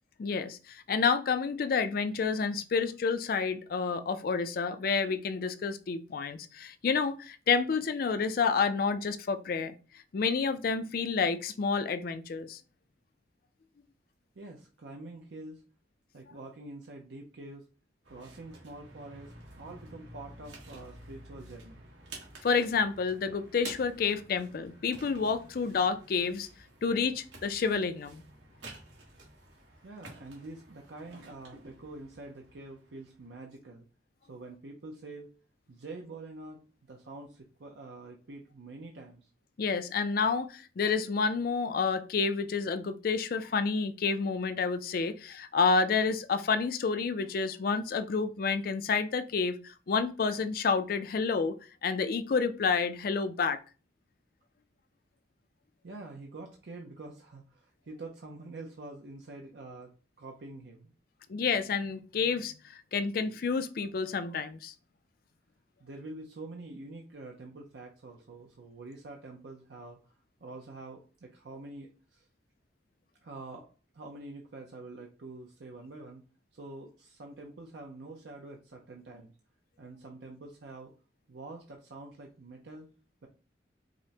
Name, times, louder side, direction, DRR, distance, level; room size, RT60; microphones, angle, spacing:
voice 1, 0.2-9.7 10.1-12.6 22.4-26.5 26.8-28.2 39.6-51.5 51.8-53.6 61.3-64.7, left 5 dB, 50° left, 0.4 m, -29 dB
voice 2, 14.4-15.6 16.1-17.7 18.1-21.9 29.8-33.9 34.3-35.3 35.7-39.3 55.8-60.9 65.8-70.1 70.4-72.3 73.2-73.7 73.9-76.2 76.5-79.3 79.8-80.9 81.3-82.9, right 2 dB, 65° right, 0.5 m, -46 dB
sound 1, 18.0-33.3, right 2 dB, 90° right, 1.3 m, -51 dB
5.0 x 2.1 x 2.7 m
head